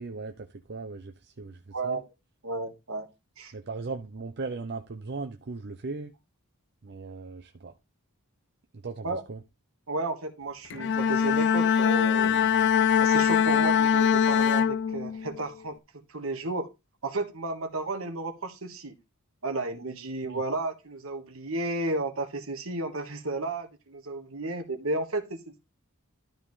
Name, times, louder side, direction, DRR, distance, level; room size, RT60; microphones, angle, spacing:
voice 1, 0.0-2.0 3.5-6.1 6.8-7.7 8.7-9.4 20.2-20.4, right 3 dB, 50° right, 0.6 m, -38 dB
voice 2, 1.7-2.0 2.4-3.1 3.4-3.5 9.0-9.2 9.9-12.4 13.0-15.8 16.1-16.7 17.0-18.9 19.4-25.6, right 2 dB, 70° right, 1.5 m, -33 dB
Bowed string instrument, 10.7-15.4, left 8 dB, 55° left, 0.4 m, -23 dB
12.5 x 5.4 x 3.2 m
head